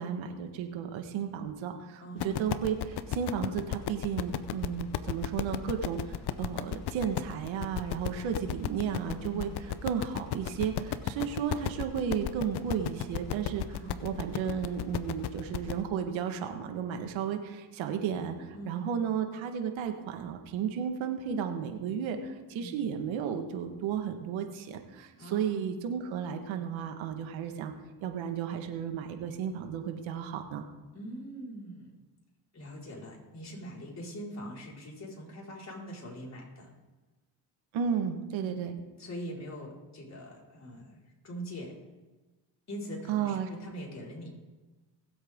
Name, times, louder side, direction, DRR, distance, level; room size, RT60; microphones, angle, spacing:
voice 1, 0.0-27.7 28.0-30.6 37.7-38.7 43.1-43.5, right 7 dB, 75° right, 5 dB, 1.7 m, -33 dB
voice 2, 2.0-2.6 9.2-9.5 13.8-14.1 18.5-18.9 22.6-22.8 25.2-25.7 30.9-31.9 32.5-36.7 38.4-41.0 41.2-41.7 42.7-44.3, equal, 35° left, -4 dB, 4.9 m, -43 dB
sound 1, 2.2-15.8, left 11 dB, 55° left, 0.8 m, -35 dB
20.0 x 8.1 x 3.7 m, 1.2 s
supercardioid pair, 75°, 47 cm